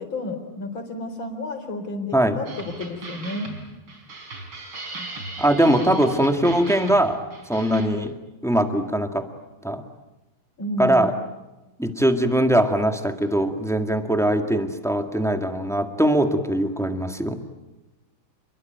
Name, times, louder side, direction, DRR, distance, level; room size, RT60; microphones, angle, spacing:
voice 1, 0.0-3.5 10.6-11.1, left 2 dB, 65° left, 6 dB, 4.7 m, -31 dB
sound 1, 2.5-7.9, right 3 dB, 70° right, 5.1 m, -38 dB
voice 2, 5.4-7.2 7.5-8.1 8.4-9.2 9.6-9.8 10.8-11.1 11.8-17.4, right 1 dB, ahead, 6 dB, 1.6 m, -21 dB
29.0 x 22.0 x 9.2 m, 1.1 s
omnidirectional pair, 2.3 m